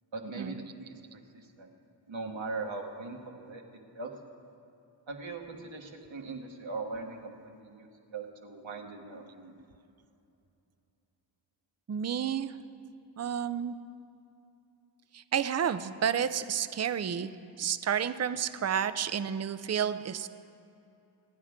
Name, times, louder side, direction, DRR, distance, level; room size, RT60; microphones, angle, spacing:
voice 1, 0.1-1.0 1.3-1.7 2.1-3.6 3.9-4.1 5.1-9.6, right 3 dB, 80° right, 1 dB, 1.5 m, -40 dB
voice 2, 11.9-12.6 13.2-13.8 15.1-17.3 17.6-20.3, right 8 dB, 35° right, 13 dB, 0.5 m, -30 dB
26.5 x 9.8 x 3.7 m, 2.8 s
wide cardioid pair, 65°, 45 cm